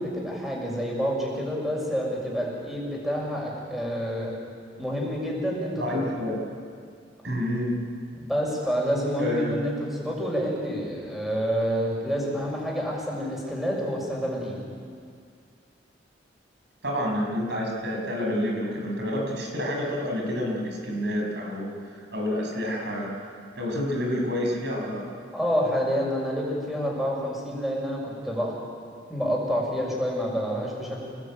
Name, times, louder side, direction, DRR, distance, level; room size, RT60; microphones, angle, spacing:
voice 1, 0.0-4.3 4.8-5.8 8.1-14.6 25.3-28.5 29.1-31.0, equal, ahead, -3 dB, 6.5 m, -28 dB
voice 2, 5.7-6.4 7.2-7.8 9.2-9.6 16.8-23.1 23.5-25.1, left 1 dB, 65° right, 0 dB, 6.6 m, -28 dB
28.5 x 19.0 x 9.1 m, 2.2 s
head